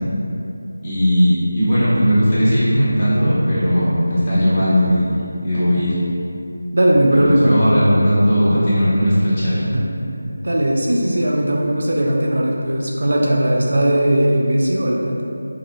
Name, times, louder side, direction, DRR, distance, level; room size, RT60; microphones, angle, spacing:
voice 1, 0.8-5.1 5.4-5.9 7.1-9.7, equal, 20° left, -12 dB, 0.8 m, -17 dB
voice 2, 6.7-7.6 9.7-9.9 10.2-15.2, right 1 dB, 55° right, -2 dB, 0.3 m, -18 dB
4.1 x 2.4 x 2.2 m, 2.7 s
figure-of-eight pair, 165°, 0 cm